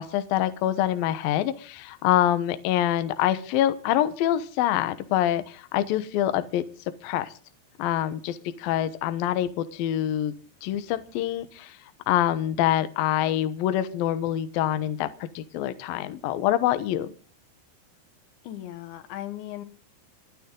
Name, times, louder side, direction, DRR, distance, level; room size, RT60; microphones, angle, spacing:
voice 1, 0.0-6.6 7.0-7.3 7.8-10.3 10.6-11.8 12.1-17.1, left 12 dB, 70° left, 12 dB, 2.4 m, -25 dB
voice 2, 18.4-19.7, left 13 dB, 85° left, 11 dB, 3.7 m, -37 dB
29.0 x 10.0 x 3.8 m, 0.39 s
omnidirectional pair, 5.1 m